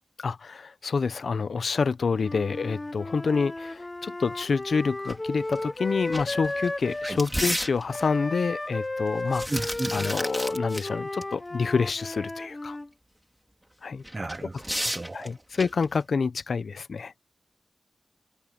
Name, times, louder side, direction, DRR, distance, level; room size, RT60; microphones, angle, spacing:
voice 1, 0.2-9.5 9.9-12.8 13.8-14.0 15.1-17.1, left 5 dB, 80° left, 0.8 m, -27 dB
Wind instrument woodwind instrument, 2.2-7.2 7.9-12.9, left 2 dB, 25° left, 1.1 m, -34 dB
sound 1, 5.1-5.2 5.5-5.6 6.0-8.2 9.1-10.9 11.2-11.3 14.0-16.0, equal, ahead, 3.3 m, -33 dB
voice 2, 9.5-10.0 14.1-15.3, right 2 dB, 30° right, 0.8 m, -34 dB
wide cardioid pair, 85°, 0 cm